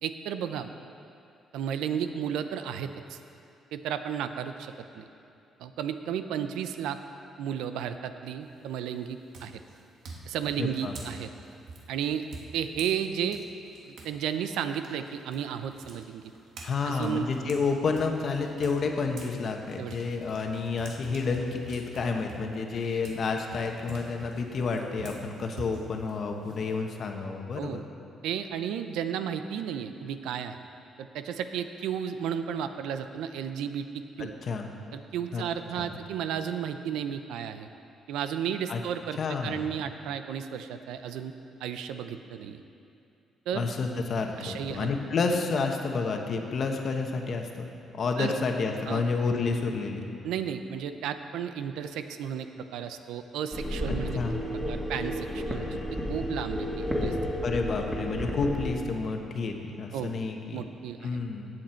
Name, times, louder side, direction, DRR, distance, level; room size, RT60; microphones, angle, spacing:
voice 1, 0.0-0.7 1.5-3.2 3.7-5.1 5.6-7.0 7.4-9.6 10.3-11.3 11.9-12.2 12.5-13.4 13.8-16.2 16.8-17.3 19.8-20.0 27.5-27.8 28.2-30.6 31.0-34.3 34.9-37.7 38.1-41.3 41.6-42.6 43.5-43.6 44.4-44.9 48.2-48.3 48.9-49.0 50.2-54.2 54.7-55.8 56.1-57.2 59.9-60.1 60.5-61.1, right 8 dB, 90° right, 9 dB, 0.5 m, -33 dB
sound 1, 8.4-8.8 9.3-14.2 14.5-19.4 19.7-27.1, right 3 dB, 75° right, 1.5 m, -46 dB
voice 2, 10.6-10.9 16.6-27.8 34.2-34.7 35.3-35.4 35.8-35.9 38.7-38.8 39.2-39.6 43.5-47.7 47.9-50.0 54.1-54.4 57.4-60.6 61.0-61.5, left 4 dB, 55° left, 3 dB, 1.2 m, -30 dB
sound 2, 53.5-58.7, equal, ahead, 2.2 m, -32 dB
15.5 x 7.8 x 4.4 m, 2.6 s
cardioid pair, 90°, 0 cm